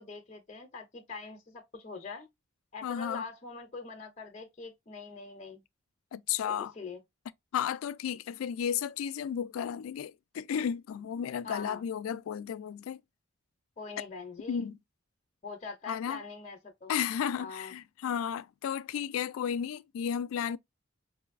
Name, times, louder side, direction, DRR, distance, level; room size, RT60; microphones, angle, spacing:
voice 1, 0.0-2.3 2.7-5.6 6.4-7.0 11.4-11.8 13.8-14.7 15.4-16.9 17.4-17.7, left 4 dB, 35° left, 0.5 m, -43 dB
voice 2, 2.8-3.2 6.1-6.7 7.5-13.0 14.5-14.8 15.9-16.2 16.9-20.6, left 8 dB, 85° left, 0.3 m, -33 dB
4.7 x 2.5 x 2.4 m
head